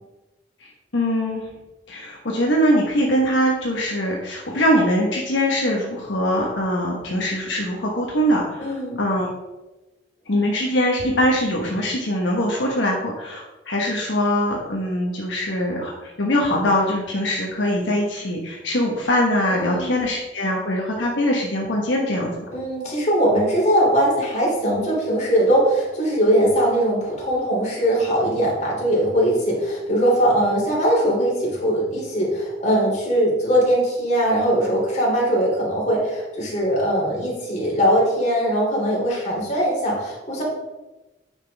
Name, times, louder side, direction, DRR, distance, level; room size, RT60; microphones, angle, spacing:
voice 1, 0.6-1.4 1.9-9.3 10.3-22.4, equal, 75° left, -2 dB, 1.2 m, -22 dB
voice 2, 8.6-9.0 19.5-20.0 22.5-40.4, equal, 40° left, -4 dB, 2.9 m, -21 dB
9.3 x 6.0 x 3.4 m, 1.1 s
head